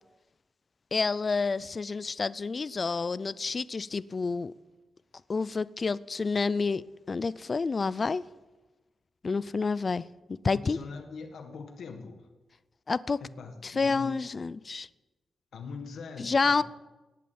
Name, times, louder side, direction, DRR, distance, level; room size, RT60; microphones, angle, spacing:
voice 1, 0.9-4.5 5.3-8.3 9.2-10.8 12.9-13.2 13.6-14.9 16.2-16.6, left 4 dB, 35° left, 0.4 m, -29 dB
voice 2, 10.5-12.3 13.2-14.3 15.5-16.6, left 4 dB, 80° left, 1.7 m, -42 dB
18.0 x 9.0 x 8.6 m
wide cardioid pair, 110°, 0 cm